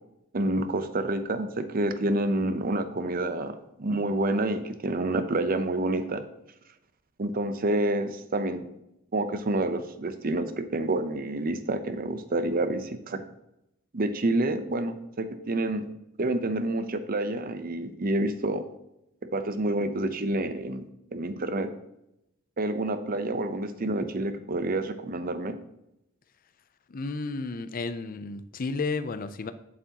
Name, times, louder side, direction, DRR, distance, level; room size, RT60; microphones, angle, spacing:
voice 1, 0.3-6.2 7.2-8.6 9.1-13.2 13.9-15.9 16.2-18.6 19.3-20.8 21.1-21.7 22.6-25.5, right 2 dB, 45° right, 10 dB, 0.7 m, -28 dB
voice 2, 26.9-29.5, left 3 dB, 45° left, 11 dB, 0.5 m, -32 dB
8.3 x 7.6 x 2.9 m, 0.84 s
head